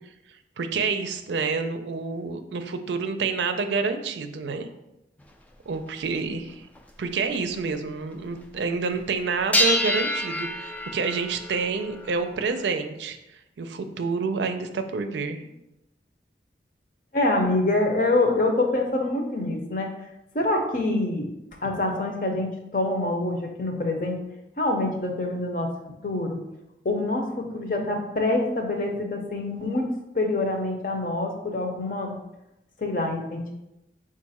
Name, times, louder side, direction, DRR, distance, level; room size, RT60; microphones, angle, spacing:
voice 1, 0.6-4.7 5.7-6.6 7.0-13.2 13.6-15.4, right 4 dB, 85° right, 8 dB, 0.4 m, -28 dB
sound 1, 5.2-5.3 6.2-6.3 6.7-6.8 7.3-7.6 9.5-12.7, left 1 dB, 10° left, 0.3 m, -27 dB
voice 2, 17.1-19.9 20.3-21.3 21.6-24.2 24.6-25.7 26.0-26.4 26.8-29.8 30.1-32.1 32.8-33.5, left 2 dB, 50° left, 2 dB, 0.7 m, -25 dB
4.6 x 2.5 x 4.1 m, 0.89 s
head